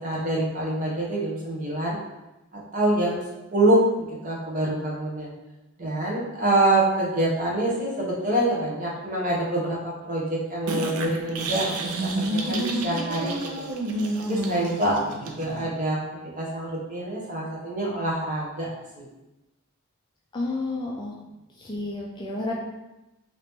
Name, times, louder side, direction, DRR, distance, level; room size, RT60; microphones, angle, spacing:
voice 1, 0.0-2.0 2.5-3.2 3.5-5.3 5.8-9.8 10.0-11.7 12.0-13.6 14.3-16.0 16.4-18.7 19.0-19.1, right 1 dB, 35° right, -5 dB, 0.9 m, -25 dB
sound 1, 10.7-15.7, right 2 dB, 85° right, 0.5 m, -29 dB
voice 2, 20.3-21.1 21.6-22.5, left 2 dB, 20° left, -3 dB, 0.3 m, -30 dB
2.9 x 2.8 x 3.4 m, 0.99 s
head